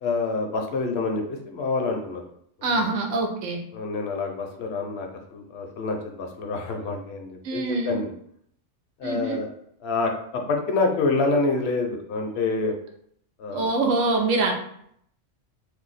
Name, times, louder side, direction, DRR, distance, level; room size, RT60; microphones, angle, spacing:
voice 1, 0.0-2.2 2.6-2.9 3.7-8.1 9.0-9.5 9.8-12.7 13.4-13.7, left 3 dB, 65° left, 2 dB, 0.8 m, -27 dB
voice 2, 2.6-3.6 7.4-8.0 9.0-9.4 13.5-14.5, right 2 dB, 90° right, 2 dB, 1.0 m, -24 dB
2.7 x 2.2 x 3.9 m, 0.68 s
omnidirectional pair, 1.3 m